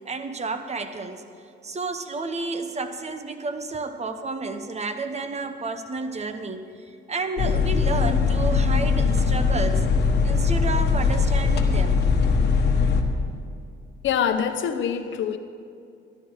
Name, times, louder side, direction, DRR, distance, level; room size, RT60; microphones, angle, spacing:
voice 1, 0.1-1.2 1.6-6.6 7.1-9.8 10.2-12.0, right 3 dB, 35° right, 9 dB, 0.9 m, -31 dB
sound 1, 7.4-13.0, left 5 dB, 60° left, 1.3 m, -21 dB
voice 2, 14.0-15.4, left 8 dB, 75° left, 9 dB, 0.9 m, -24 dB
13.5 x 11.5 x 4.8 m, 2.4 s
cardioid pair, 90°, 20 cm